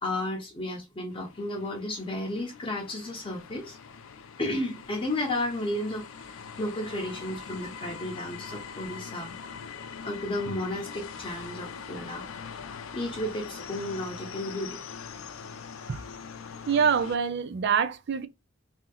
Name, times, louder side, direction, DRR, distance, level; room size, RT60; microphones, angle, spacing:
voice 1, 0.0-3.8 4.4-9.4 10.0-12.2 12.9-14.8, left 1 dB, 25° left, 0.8 m, -33 dB
sound 1, 1.1-17.2, left 6 dB, 80° left, 0.5 m, -42 dB
voice 2, 16.7-18.3, right 7 dB, 60° right, 0.4 m, -25 dB
2.9 x 2.7 x 3.8 m
head